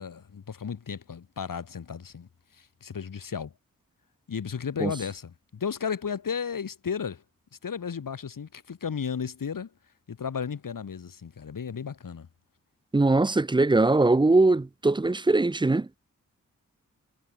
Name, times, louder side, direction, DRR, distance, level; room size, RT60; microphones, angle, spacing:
voice 1, 0.0-2.3 2.6-3.5 4.3-7.2 7.6-9.7 10.1-12.3, left 6 dB, 80° left, 4.5 m, -34 dB
voice 2, 12.9-15.9, right 2 dB, 15° right, 0.5 m, -21 dB
cardioid pair, 65°, 32 cm